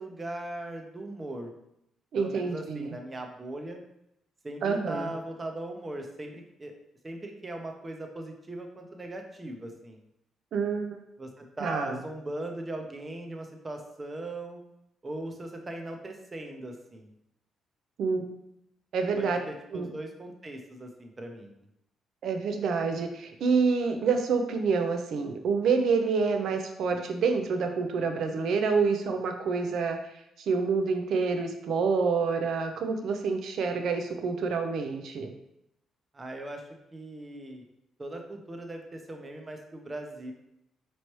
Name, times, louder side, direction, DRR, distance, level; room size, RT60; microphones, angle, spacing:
voice 1, 0.0-1.5 2.2-3.8 4.4-6.7 7.0-10.0 11.2-14.6 15.0-17.1 19.2-21.5 36.1-36.6 36.9-37.6 38.0-40.3, right 1 dB, 25° right, 3 dB, 0.6 m, -39 dB
voice 2, 2.1-2.9 4.6-5.1 10.5-11.0 11.6-12.0 18.0-18.2 18.9-19.4 19.7-19.9 22.2-30.0 30.4-35.3, right 5 dB, 70° right, 5 dB, 0.5 m, -27 dB
4.1 x 3.1 x 3.0 m, 0.80 s
cardioid pair, 90°, 0 cm